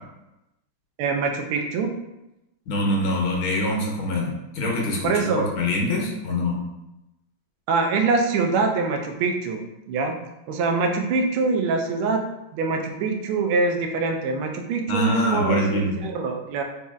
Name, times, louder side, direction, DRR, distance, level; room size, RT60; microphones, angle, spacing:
voice 1, 1.0-1.9 5.0-5.5 7.7-10.1 10.5-12.2 12.5-16.6, right 4 dB, 90° right, 4 dB, 1.4 m, -24 dB
voice 2, 2.7-6.6 14.9-16.1, left 1 dB, 80° left, -1 dB, 1.7 m, -25 dB
4.3 x 2.7 x 2.3 m, 0.93 s
omnidirectional pair, 2.3 m